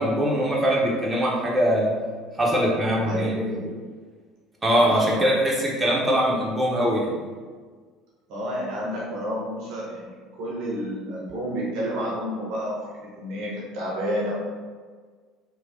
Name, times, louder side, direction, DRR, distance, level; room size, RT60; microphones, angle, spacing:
voice 1, 0.0-1.9 2.4-3.3 4.6-7.1, equal, 15° right, -5 dB, 0.8 m, -22 dB
voice 2, 3.0-3.7 4.9-5.3 8.3-12.8 13.2-14.3, equal, 55° right, -4 dB, 0.7 m, -30 dB
3.1 x 2.2 x 2.6 m, 1.5 s
figure-of-eight pair, 60°, 0 cm